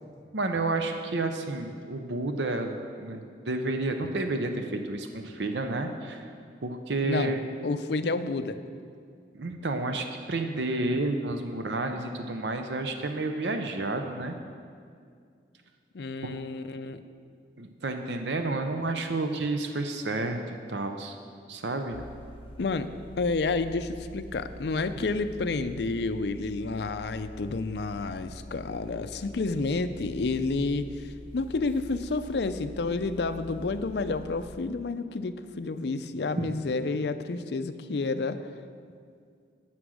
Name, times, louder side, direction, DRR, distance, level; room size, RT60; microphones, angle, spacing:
voice 1, 0.3-6.3 6.6-7.4 9.3-14.4 16.2-16.3 17.6-21.2 21.5-22.0 24.9-25.1 36.4-36.5, right 2 dB, 75° right, 6 dB, 0.7 m, -30 dB
voice 2, 7.0-7.4 7.6-8.6 15.9-17.0 22.6-22.9 23.2-31.1 31.3-38.4, left 3 dB, 65° left, 10 dB, 0.5 m, -30 dB
sound 1, 21.9-34.6, equal, 30° left, 0.8 m, -45 dB
11.5 x 6.1 x 6.3 m, 2.3 s
head